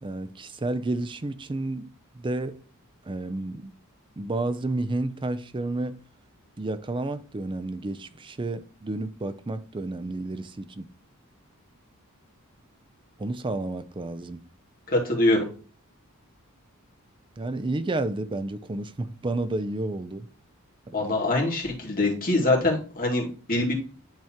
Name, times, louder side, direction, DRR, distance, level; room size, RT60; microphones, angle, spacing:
voice 1, 0.0-1.8 2.2-2.6 3.1-3.7 4.2-6.0 6.6-10.8 13.2-14.4 17.4-20.3 20.9-21.1, right 2 dB, 25° right, 0.5 m, -31 dB
voice 2, 14.9-15.5 20.9-23.7, left 2 dB, 40° left, 2.3 m, -24 dB
10.5 x 3.6 x 2.9 m
head